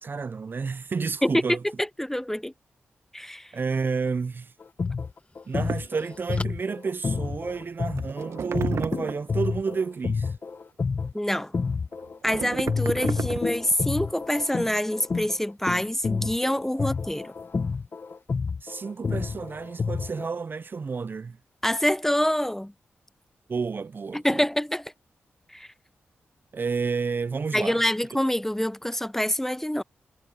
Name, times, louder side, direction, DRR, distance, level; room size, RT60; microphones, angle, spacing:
voice 1, 0.0-1.6 3.5-4.5 5.5-10.3 16.7-16.9 18.6-21.4 23.5-24.4 26.5-27.8, right 5 dB, 50° right, 0.4 m, -30 dB
voice 2, 1.8-2.5 3.1-3.5 11.1-11.5 12.2-17.3 21.6-22.7 24.1-24.9 25.5-25.7 27.5-29.8, left 1 dB, 5° left, 0.5 m, -26 dB
sound 1, 4.6-12.3 12.7-20.3, left 5 dB, 50° left, 1.2 m, -29 dB
sound 2, 4.8-7.9, left 2 dB, 25° left, 1.3 m, -44 dB
sound 3, 5.7-5.9 7.6-7.7 8.0-9.3 11.9-13.7, right 7 dB, 75° right, 1.1 m, -33 dB
cardioid pair, 45°, 5 cm